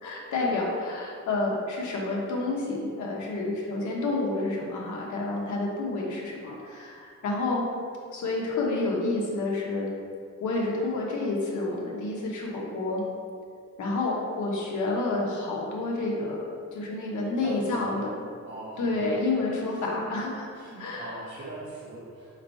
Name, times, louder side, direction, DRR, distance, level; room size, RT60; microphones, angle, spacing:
voice 1, 0.0-7.6 8.1-9.9 10.4-13.0 13.8-16.4 16.7-18.1 18.8-20.5 20.8-21.1, left 2 dB, 90° left, -2 dB, 1.2 m, -29 dB
voice 2, 17.4-18.0 18.4-18.8 19.7-20.0 20.5-22.4, right 2 dB, 40° right, -7 dB, 1.1 m, -41 dB
4.4 x 3.9 x 5.6 m, 2.2 s
cardioid pair, 140°, 29 cm